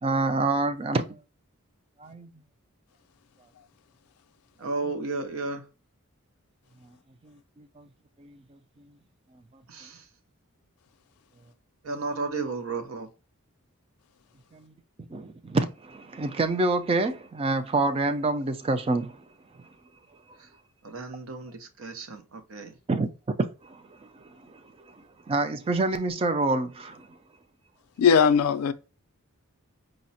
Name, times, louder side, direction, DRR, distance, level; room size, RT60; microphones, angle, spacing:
voice 1, 0.0-1.2 2.0-2.3 7.6-7.8 8.2-8.3 14.6-14.7 15.1-19.2 22.9-23.1 23.7-23.8 25.3-27.1, right 2 dB, 25° right, 0.3 m, -26 dB
voice 2, 4.6-5.7 9.7-10.0 11.8-13.1 20.8-22.7, right 3 dB, 70° right, 0.6 m, -33 dB
voice 3, 28.0-28.7, left 7 dB, 90° left, 0.4 m, -19 dB
4.8 x 2.1 x 2.6 m
head